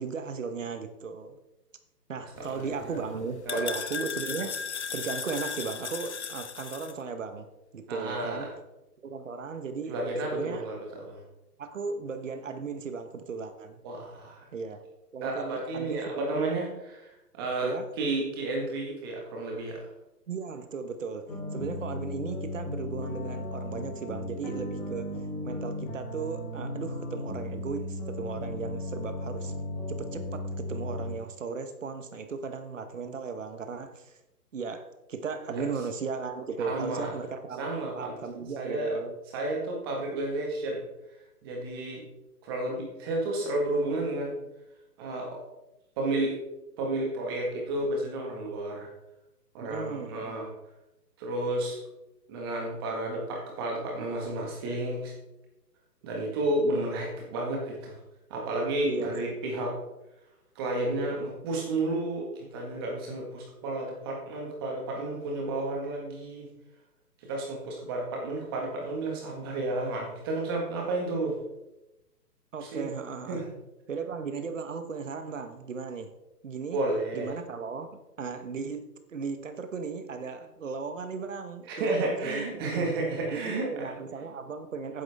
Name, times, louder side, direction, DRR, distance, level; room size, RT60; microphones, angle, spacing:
voice 1, 0.0-1.4 2.1-4.6 4.9-7.5 7.7-8.5 9.0-10.6 11.6-13.8 14.5-14.8 15.1-16.5 17.6-17.9 20.3-25.2 25.4-29.5 29.9-34.2 34.5-37.7 37.9-39.1 49.6-50.4 58.8-59.3 72.5-73.4 73.9-76.1 76.4-76.8 77.1-82.8 83.3-85.0, right 5 dB, 50° right, 9 dB, 1.4 m, -36 dB
sound 1, 2.4-6.9, left 6 dB, 45° left, 0.7 m, -36 dB
voice 2, 2.4-3.0 3.4-3.7 7.9-8.5 9.9-11.2 13.8-14.5 15.2-19.9 35.5-35.6 36.6-37.1 37.6-38.1 38.6-39.0 39.3-40.8 41.4-42.0 42.4-44.4 45.0-45.4 46.0-46.3 46.8-48.9 49.5-50.5 51.2-51.8 52.3-55.1 56.0-57.9 58.3-59.7 60.5-66.5 67.2-71.4 72.6-72.9 73.3-73.4 76.7-77.3 81.7-83.9, right 2 dB, 15° right, -1 dB, 1.7 m, -31 dB
sound 2, 21.3-31.1, left 1 dB, 15° left, 2.4 m, -36 dB
12.0 x 9.9 x 3.6 m, 0.95 s
hypercardioid pair, 170°, 48 cm